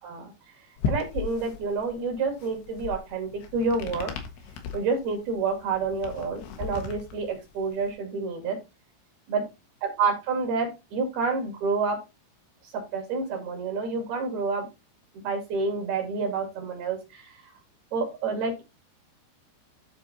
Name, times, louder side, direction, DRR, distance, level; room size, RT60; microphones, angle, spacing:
sound 1, 0.8-7.9, left 6 dB, 80° left, 3.6 m, -36 dB
voice 1, 0.9-4.1 4.7-8.6 9.3-9.4 9.8-12.0 12.7-14.7 15.1-17.4 17.9-18.6, right 4 dB, 65° right, 2 dB, 4.3 m, -28 dB
12.5 x 4.6 x 4.0 m, 0.26 s
omnidirectional pair, 4.9 m